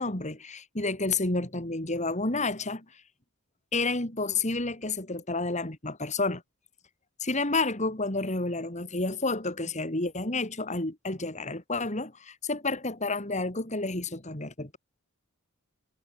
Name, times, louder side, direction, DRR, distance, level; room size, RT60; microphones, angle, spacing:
voice 1, 0.0-3.0 3.7-6.4 7.2-14.8, left 3 dB, 30° left, 3.1 m, -30 dB
head